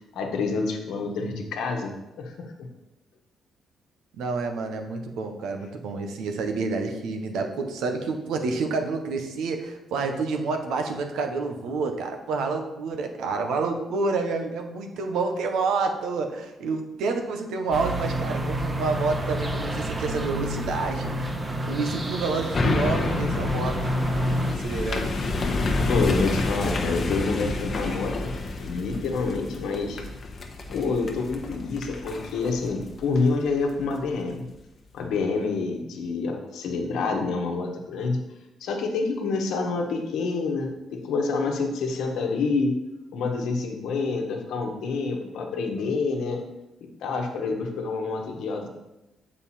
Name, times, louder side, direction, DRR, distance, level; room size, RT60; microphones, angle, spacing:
voice 1, 0.1-1.9 2.2-2.3 2.6-2.7 25.9-28.3 28.6-30.0 30.7-34.5 34.9-38.2 38.6-42.8 43.1-46.4 47.0-48.7, left 4 dB, 80° left, 2 dB, 1.2 m, -27 dB
voice 2, 4.2-21.4 21.7-23.9 24.6-25.1, right 4 dB, 80° right, 5 dB, 1.0 m, -28 dB
sound 1, 17.7-24.5, right 1 dB, 25° right, 1.1 m, -29 dB
sound 2, 22.5-34.0 34.4-34.5, left 3 dB, 45° left, 1.0 m, -29 dB
7.2 x 5.3 x 4.3 m, 0.97 s
cardioid pair, 90°, 0 cm